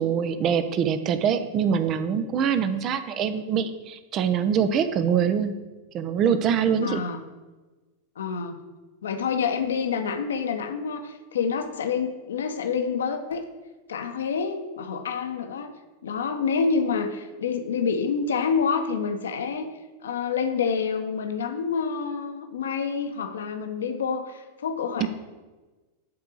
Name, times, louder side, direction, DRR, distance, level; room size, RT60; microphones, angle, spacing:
voice 1, 0.0-5.5 5.9-7.0 25.0-25.1, right 7 dB, 35° right, 11 dB, 0.9 m, -24 dB
voice 2, 6.8-7.2 8.2-8.6 9.0-13.4 13.9-15.7 16.0-19.7 20.0-25.1, left 6 dB, 65° left, 6 dB, 1.1 m, -27 dB
12.0 x 4.7 x 6.7 m, 1.2 s
figure-of-eight pair, 90°, 0 cm